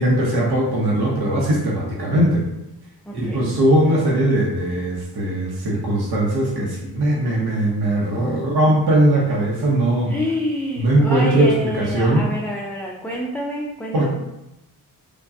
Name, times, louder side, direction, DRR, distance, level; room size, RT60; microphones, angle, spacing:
voice 1, 0.0-2.4 3.1-10.1 10.8-12.2 13.9-14.1, right 1 dB, 70° right, -4 dB, 0.8 m, -19 dB
voice 2, 3.1-3.4 10.1-14.1, equal, 5° left, -3 dB, 0.3 m, -27 dB
4.6 x 2.2 x 2.6 m, 0.90 s
cardioid pair, 95°, 40 cm